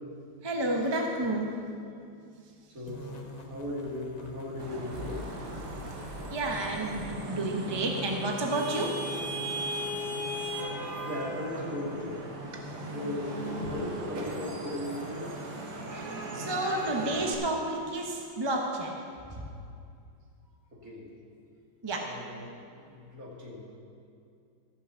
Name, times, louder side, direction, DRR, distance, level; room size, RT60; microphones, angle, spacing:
voice 1, 0.4-1.5 6.3-8.9 15.9-18.9 21.8-22.0, right 2 dB, 20° right, 0 dB, 0.7 m, -30 dB
voice 2, 2.7-5.2 11.0-12.2 12.9-15.4 20.7-21.1 22.0-23.8, left 1 dB, 45° right, -4 dB, 2.7 m, -38 dB
sound 1, 2.9-13.8, left 2 dB, 35° left, 0.7 m, -45 dB
Vehicle horn car horn honking / Traffic noise roadway noise, 4.6-17.4, right 1 dB, 85° right, 2.2 m, -37 dB
14.5 x 6.3 x 7.0 m, 2.4 s
omnidirectional pair, 2.1 m